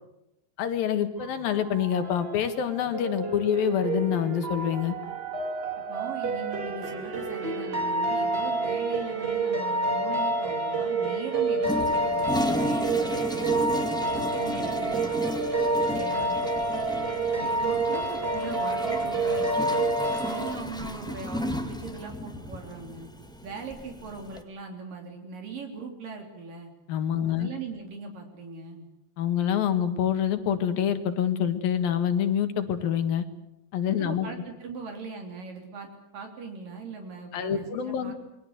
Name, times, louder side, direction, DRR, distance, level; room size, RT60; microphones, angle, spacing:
voice 1, 0.6-5.0 26.9-27.5 29.2-33.2 33.7-34.3 37.3-38.1, left 9 dB, 80° left, 8 dB, 3.5 m, -26 dB
sound 1, 1.2-20.5, right 2 dB, 20° right, 2.0 m, -28 dB
voice 2, 5.9-13.7 14.1-15.4 15.9-16.4 17.3-19.9 20.2-23.1 23.4-26.7 27.2-28.9 33.9-38.1, right 4 dB, 70° right, 3 dB, 4.8 m, -40 dB
Toilet flush, 11.6-24.4, equal, ahead, 1.0 m, -34 dB
28.5 x 22.0 x 8.0 m, 0.87 s
omnidirectional pair, 4.1 m